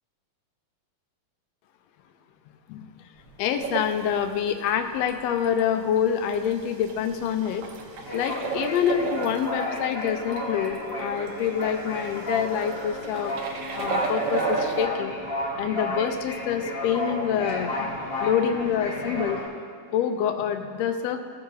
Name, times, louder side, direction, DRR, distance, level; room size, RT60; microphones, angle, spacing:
sound 1, 3.2-4.4 4.7-5.0 5.2-19.5, left 1 dB, 35° left, 1.6 m, -33 dB
voice 1, 3.4-7.6 8.1-13.3 13.7-15.1 15.6-19.4 19.9-21.2, left 8 dB, 75° left, 7 dB, 1.6 m, -26 dB
sound 2, 3.6-4.4 5.0-5.6 6.0-6.1 6.3-9.7 10.0-10.4 10.7-10.8 11.2-11.6 12.0-14.9, right 5 dB, 70° right, 1.5 m, -32 dB
17.0 x 6.8 x 2.7 m, 2.2 s
omnidirectional pair, 3.3 m